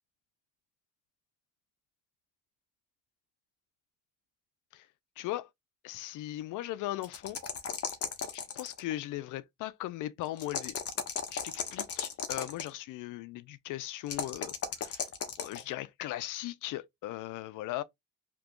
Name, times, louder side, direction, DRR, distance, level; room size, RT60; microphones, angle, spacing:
voice 1, 5.2-5.5 5.8-7.4 8.3-10.7 11.3-15.1 15.4-17.8, left 15 dB, 85° left, 0.5 m, -38 dB
sound 1, 7.0-8.9 10.4-12.7 14.1-15.6, left 6 dB, 50° left, 0.9 m, -35 dB
2.9 x 2.2 x 3.6 m
cardioid pair, 90°, 30 cm